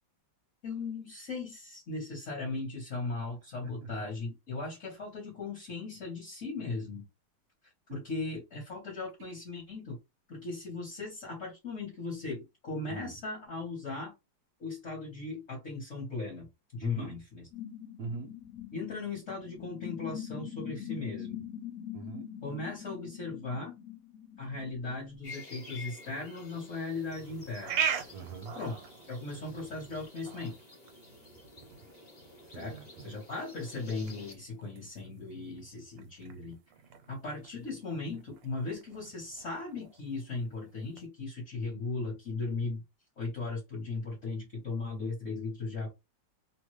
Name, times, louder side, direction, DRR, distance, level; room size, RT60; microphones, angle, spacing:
voice 1, 0.6-7.0 7.9-10.0 10.3-14.1 14.6-17.5 18.7-21.4 22.4-23.8 24.4-27.8 28.6-28.7 29.1-30.6 32.5-36.6 37.1-42.8 43.2-45.9, left 3 dB, 50° left, 1.1 m, -38 dB
voice 2, 16.8-17.2 18.0-18.4 21.9-22.3 28.1-28.5 32.4-33.1, right 4 dB, 70° right, 1.0 m, -41 dB
sound 1, 17.5-25.2, left 10 dB, 85° left, 0.7 m, -43 dB
sound 2, 25.2-34.3, left 3 dB, 35° left, 0.7 m, -51 dB
sound 3, 27.0-41.1, right 8 dB, 85° right, 1.3 m, -42 dB
3.0 x 2.2 x 3.0 m
omnidirectional pair, 2.0 m